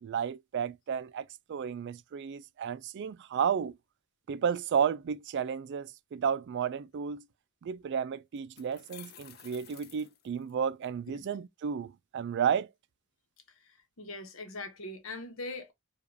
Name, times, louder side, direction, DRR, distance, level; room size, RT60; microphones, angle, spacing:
voice 1, 0.0-3.8 4.3-7.3 7.6-12.7, right 7 dB, 55° right, 0.3 m, -32 dB
sound 1, 7.7-7.8 8.4-10.9, left 10 dB, 50° left, 0.5 m, -53 dB
voice 2, 14.0-15.7, left 2 dB, 75° left, 1.0 m, -41 dB
4.8 x 2.4 x 2.6 m
head